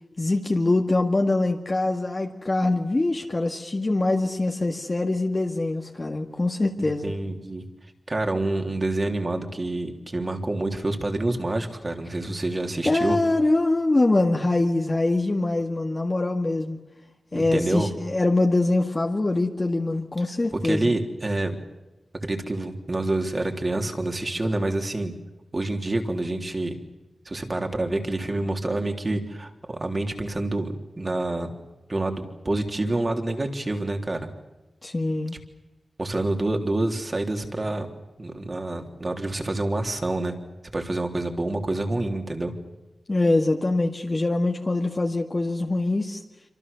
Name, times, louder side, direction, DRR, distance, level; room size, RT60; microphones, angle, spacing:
voice 1, 0.2-7.1 12.8-16.8 17.3-20.9 34.8-35.4 43.1-46.2, left 2 dB, 30° left, 2 dB, 2.0 m, -23 dB
voice 2, 6.8-7.6 8.1-13.2 17.3-17.9 20.6-21.6 22.2-25.1 25.5-26.8 27.3-31.5 31.9-34.3 36.0-37.9 38.2-40.3 40.7-42.5, right 2 dB, 30° right, 4 dB, 3.5 m, -27 dB
27.5 x 26.0 x 7.1 m, 1.0 s
wide cardioid pair, 120°, 0 cm